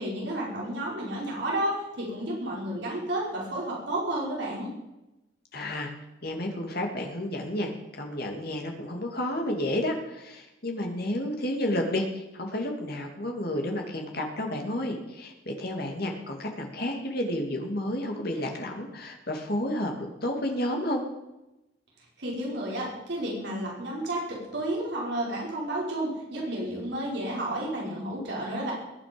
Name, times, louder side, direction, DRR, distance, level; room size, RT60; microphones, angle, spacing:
voice 1, 0.0-4.7 22.2-28.7, right 1 dB, 60° right, -4 dB, 5.1 m, -31 dB
voice 2, 5.5-5.9 6.2-7.7 8.0-21.0, left 1 dB, 50° left, 2 dB, 2.7 m, -31 dB
21.5 x 9.5 x 5.3 m, 0.96 s
head